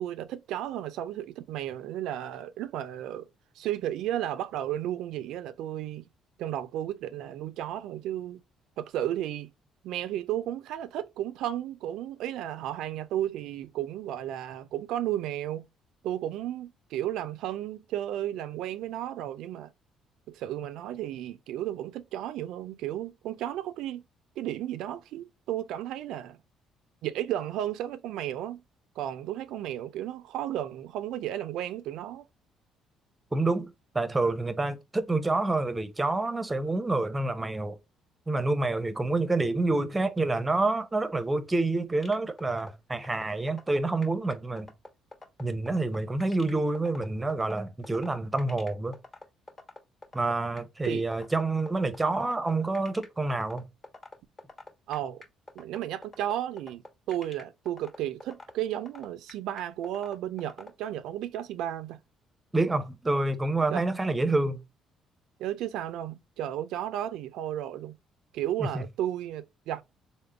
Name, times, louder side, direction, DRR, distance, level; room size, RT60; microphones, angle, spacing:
voice 1, 0.0-3.3 3.6-6.1 6.4-8.4 8.8-9.5 9.8-15.7 16.0-19.7 20.3-24.0 24.4-26.4 27.0-28.6 29.0-32.3 50.8-51.1 54.9-55.2 55.6-62.0 63.7-63.8 65.4-68.0 68.3-69.8, right 12 dB, 80° right, 0.3 m, -33 dB
voice 2, 33.3-37.8 38.3-44.7 45.4-49.0 50.1-53.6 62.5-64.6 68.6-68.8, right 2 dB, 15° right, 0.6 m, -28 dB
sound 1, 42.0-60.7, left 2 dB, 25° left, 1.1 m, -45 dB
3.6 x 2.0 x 3.3 m
cardioid pair, 100°, 0 cm